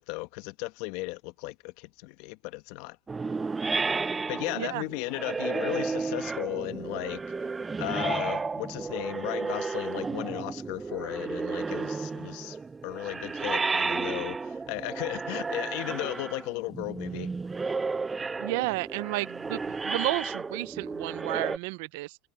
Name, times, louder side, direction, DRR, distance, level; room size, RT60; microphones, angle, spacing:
voice 1, 0.0-3.0 4.3-7.5 7.8-12.6 12.8-17.3, left 22 dB, 75° left, 1.1 m, -35 dB
sound 1, 3.1-21.6, right 4 dB, 20° right, 0.5 m, -33 dB
voice 2, 18.4-22.2, right 22 dB, 80° right, 0.6 m, -32 dB
supercardioid pair, 110°, 0 cm